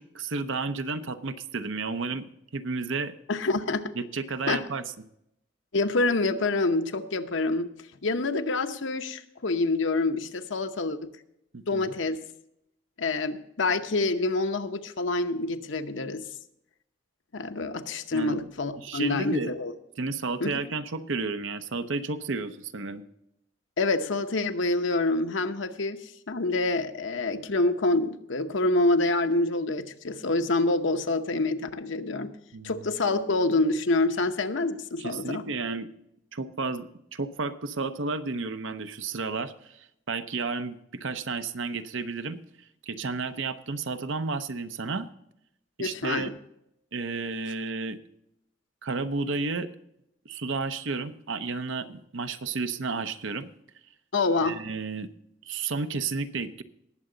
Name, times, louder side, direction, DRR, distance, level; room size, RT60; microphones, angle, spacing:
voice 1, 0.0-3.1 4.0-4.8 11.5-11.9 18.1-18.4 18.8-19.5 20.0-23.0 32.5-32.9 35.0-35.9 36.3-42.4 42.9-45.1 45.8-46.3 46.9-48.0 48.8-49.7 50.2-53.5 54.4-55.1 55.4-56.6, right 4 dB, 80° right, 10 dB, 0.8 m, -32 dB
voice 2, 3.3-3.9 4.5-4.7 5.7-7.7 8.0-11.1 11.7-12.2 13.0-16.2 17.3-19.7 20.4-20.6 23.8-32.3 32.6-35.4 45.8-46.3 54.1-54.6, left 2 dB, 75° left, 8 dB, 0.9 m, -27 dB
19.0 x 7.7 x 3.9 m, 0.79 s
head